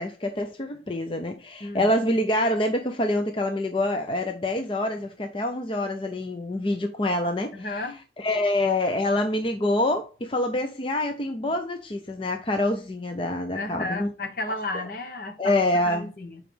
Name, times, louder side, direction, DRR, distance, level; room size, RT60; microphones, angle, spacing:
voice 1, 0.0-7.8 8.2-14.1 14.5-14.6 15.4-16.1, left 1 dB, 30° left, 0.6 m, -26 dB
voice 2, 7.5-8.0 13.5-16.4, left 2 dB, 50° left, 1.1 m, -33 dB
7.4 x 4.9 x 3.3 m
head